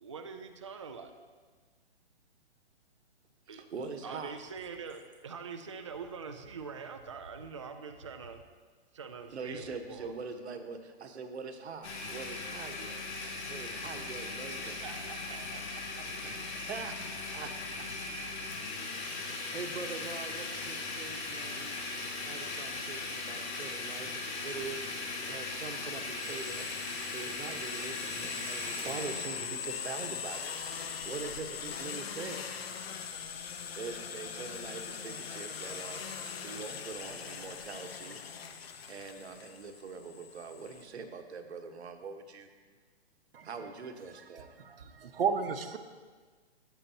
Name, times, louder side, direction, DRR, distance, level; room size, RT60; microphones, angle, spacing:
voice 1, 0.0-1.1 3.5-3.7 4.0-8.4 8.9-10.1 14.6-16.0, right 5 dB, 30° right, 6 dB, 0.4 m, -44 dB
voice 2, 3.5-4.4 9.3-13.0 13.5-14.8 16.2-17.0 17.3-17.5 17.8-17.9 18.2-18.3 18.9-21.8 22.2-24.8 25.2-26.7 27.1-30.7 31.1-32.4 33.8-36.0 36.4-38.2 38.9-42.5 43.4-44.5, right 4 dB, 80° right, 6 dB, 1.3 m, -43 dB
Domestic sounds home sounds, 11.8-29.5, left 3 dB, 85° left, 2.6 m, -38 dB
sound 1, 26.2-40.8, left 7 dB, 65° left, 1.0 m, -41 dB
voice 3, 44.6-45.8, right 6 dB, 60° right, 8 dB, 1.0 m, -32 dB
16.0 x 8.4 x 2.9 m, 1.5 s
hypercardioid pair, 175°, 33 cm